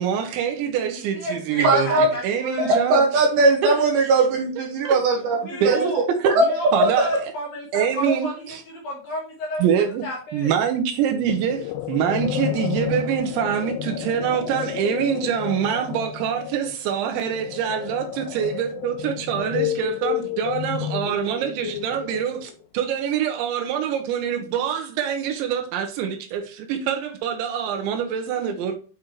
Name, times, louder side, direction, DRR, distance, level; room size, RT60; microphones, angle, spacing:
voice 1, 0.0-1.9 2.2-3.0 3.6-3.7 4.8-5.0 5.6-5.9 6.2-6.3 6.7-7.1 7.7-8.3 9.6-10.0 10.3-28.7, right 8 dB, 80° right, 2.9 m, -25 dB
voice 2, 0.9-3.0 5.4-6.0 6.4-10.5, left 1 dB, 65° left, 2.4 m, -32 dB
voice 3, 1.6-2.1 2.9-5.8 6.3-6.4 6.8-6.9, right 2 dB, 65° right, 2.8 m, -19 dB
sound 1, 11.3-22.6, left 11 dB, 85° left, 2.4 m, -31 dB
8.9 x 5.0 x 3.0 m
omnidirectional pair, 5.6 m